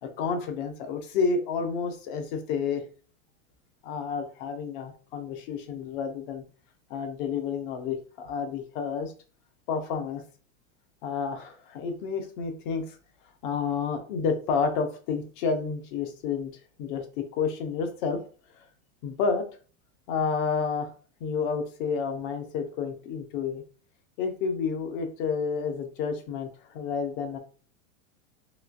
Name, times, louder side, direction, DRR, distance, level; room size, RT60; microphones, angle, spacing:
voice 1, 0.0-2.8 3.8-6.4 6.9-9.1 9.7-10.2 11.0-13.0 13.4-16.5 16.8-18.2 19.0-19.4 20.1-20.9 21.2-23.6 24.2-26.5 26.7-27.4, left 5 dB, 40° left, 6 dB, 0.6 m, -30 dB
3.0 x 2.9 x 2.5 m, 0.39 s
supercardioid pair, 150°, 42 cm